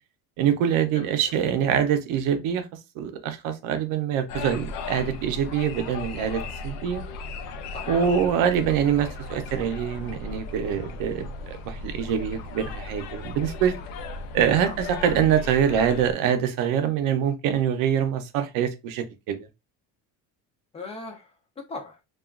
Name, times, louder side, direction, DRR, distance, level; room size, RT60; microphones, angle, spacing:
voice 1, 0.4-2.7 3.0-7.0 7.9-13.7 14.3-19.5, right 8 dB, 60° right, 0.6 m, -24 dB
voice 2, 0.9-1.4 7.7-8.3 14.5-15.0 20.7-22.0, left 3 dB, 15° left, 0.4 m, -40 dB
sound 1, 4.3-16.1, left 3 dB, 75° left, 0.5 m, -36 dB
2.9 x 2.3 x 2.3 m
cardioid pair, 160°, 36 cm